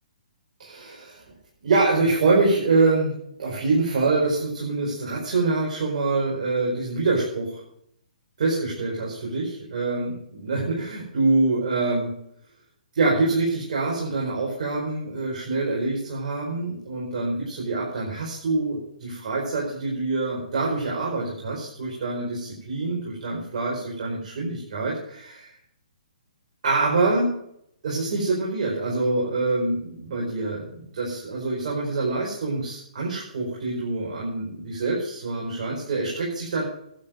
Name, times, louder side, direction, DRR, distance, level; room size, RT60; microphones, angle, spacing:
voice 1, 0.6-1.2 1.6-3.1 3.4-7.6 8.4-12.1 12.9-25.5 26.6-27.3 27.8-36.6, right 3 dB, 60° right, -4 dB, 5.0 m, -25 dB
11.5 x 7.6 x 9.3 m, 0.71 s
hypercardioid pair, 140°, 4 cm